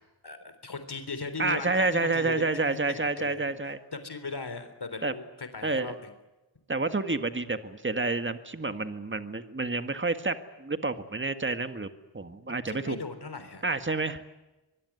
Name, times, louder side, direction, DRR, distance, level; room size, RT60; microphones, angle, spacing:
voice 1, 0.2-2.5 2.9-3.5 3.9-6.1 12.5-13.7, left 4 dB, 65° left, 9 dB, 3.6 m, -38 dB
voice 2, 1.4-3.8 5.0-5.1 5.6-6.0 6.7-11.9 12.1-13.0 13.6-14.2, right 3 dB, 25° right, 9 dB, 1.8 m, -29 dB
24.5 x 21.0 x 9.6 m, 1.1 s
wide cardioid pair, 80°, 42 cm